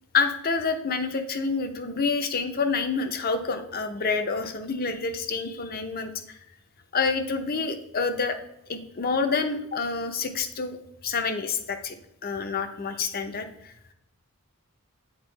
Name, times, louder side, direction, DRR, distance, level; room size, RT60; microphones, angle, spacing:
voice 1, 0.1-6.1 6.9-8.4 8.7-10.8 11.0-12.0 12.2-13.7, left 4 dB, 45° left, 8 dB, 0.7 m, -28 dB
8.1 x 4.3 x 3.2 m, 0.81 s
head